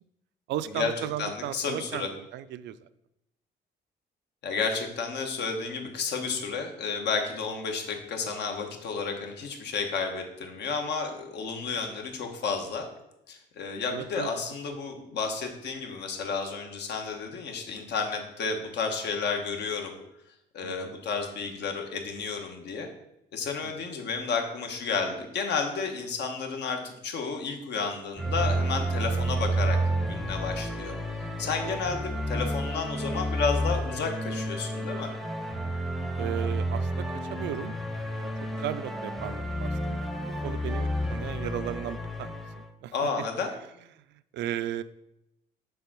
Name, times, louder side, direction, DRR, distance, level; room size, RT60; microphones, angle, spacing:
voice 1, 0.5-2.8 13.9-14.3 20.6-20.9 23.6-23.7 31.4-31.8 36.2-37.8 38.1-42.4 42.8-42.9 44.3-44.8, right 11 dB, 90° right, 14 dB, 0.4 m, -36 dB
voice 2, 1.2-2.1 4.4-12.9 13.3-20.0 20.5-22.9 23.3-29.8 30.0-30.9 31.4-35.1 42.9-43.5, left 5 dB, 75° left, 4 dB, 1.3 m, -31 dB
sound 1, 28.2-42.7, right 1 dB, ahead, 0.6 m, -30 dB
6.8 x 3.8 x 6.0 m, 0.84 s
cardioid pair, 130°, 18 cm